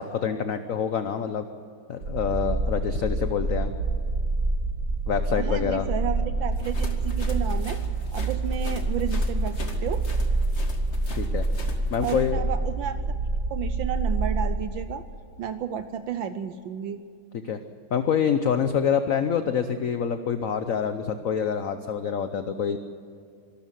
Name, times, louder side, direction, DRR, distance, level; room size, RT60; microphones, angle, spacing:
voice 1, 0.0-1.5 1.9-3.7 5.1-5.9 11.1-11.4 11.9-12.4 17.4-17.6 17.9-22.8, left 7 dB, 55° left, 9 dB, 0.9 m, -26 dB
sound 1, 2.0-14.5, right 2 dB, 55° right, 3.8 m, -27 dB
voice 2, 5.3-7.8 8.1-10.0 12.0-13.0 13.5-15.0 15.4-17.0, right 8 dB, 70° right, 11 dB, 1.4 m, -32 dB
sound 2, 6.6-12.3, left 2 dB, 35° left, 2.0 m, -41 dB
25.0 x 13.0 x 9.2 m, 2.3 s
omnidirectional pair, 2.3 m